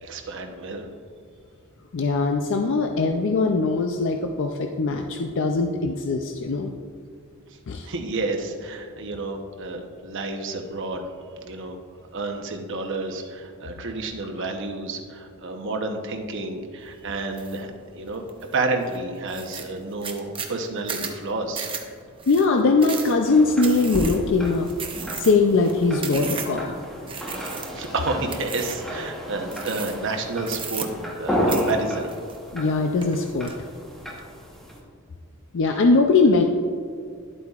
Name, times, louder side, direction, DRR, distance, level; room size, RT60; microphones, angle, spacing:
voice 1, 0.0-0.9 7.8-11.1 11.4-11.8 12.1-18.3 18.5-21.7 27.7-30.9 31.2-32.1 35.7-35.9, right 3 dB, 60° right, 4 dB, 0.9 m, -30 dB
voice 2, 1.9-6.7 7.7-7.9 22.3-24.7 25.2-26.8 32.5-33.5 35.5-36.4, left 3 dB, 60° left, 4 dB, 0.4 m, -21 dB
sound 1, 17.4-17.6 18.1-18.6 18.9-19.0 19.3-26.7 27.1-27.9 28.3-28.9 29.5-30.1 30.4-31.2 31.5-32.7 33.0-33.5, right 6 dB, 25° right, 0.7 m, -35 dB
sound 2, 23.2-34.8, equal, ahead, 1.1 m, -32 dB
sound 3, 23.8-29.0 29.4-31.2, left 1 dB, 35° left, 1.5 m, -38 dB
11.5 x 8.1 x 2.4 m, 2.2 s
head